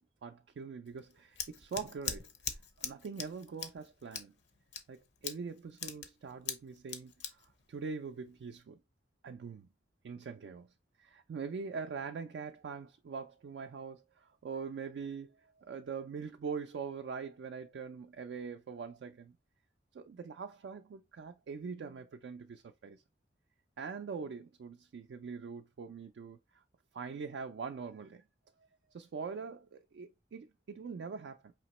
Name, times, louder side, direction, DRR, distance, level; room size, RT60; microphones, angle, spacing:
voice 1, 0.0-2.3 2.8-4.3 4.9-8.8 9.2-9.7 10.0-10.7 11.0-19.4 19.9-23.0 23.8-26.6 26.9-28.2 28.9-31.5, right 5 dB, 80° right, 0.3 m, -43 dB
Scissors, 0.9-8.6, left 8 dB, 75° left, 0.7 m, -43 dB
4.9 x 2.9 x 2.9 m
head